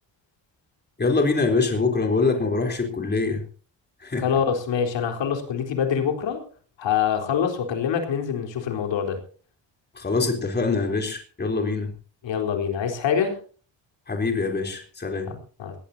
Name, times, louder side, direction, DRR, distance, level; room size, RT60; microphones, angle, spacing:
voice 1, 1.0-3.4 4.0-4.3 10.0-11.9 14.1-15.3, left 3 dB, 20° left, 3 dB, 3.7 m, -24 dB
voice 2, 4.2-6.4 6.8-9.2 12.2-13.4 15.3-15.8, left 7 dB, 80° left, 3 dB, 4.1 m, -25 dB
20.0 x 18.5 x 2.8 m, 0.40 s
cardioid pair, 150°, 44 cm